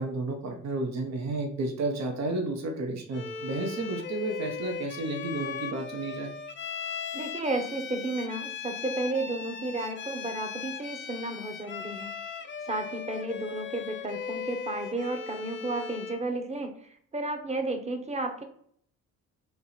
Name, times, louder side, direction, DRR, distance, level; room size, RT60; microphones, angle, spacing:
voice 1, 0.0-6.3, right 2 dB, 60° right, 3 dB, 0.9 m, -32 dB
Bowed string instrument, 3.1-16.3, left 6 dB, 40° left, 0.5 m, -38 dB
voice 2, 7.1-12.1 12.6-18.4, right 2 dB, 20° right, 5 dB, 0.9 m, -33 dB
3.4 x 2.9 x 4.1 m, 0.65 s
cardioid pair, 90°, 30 cm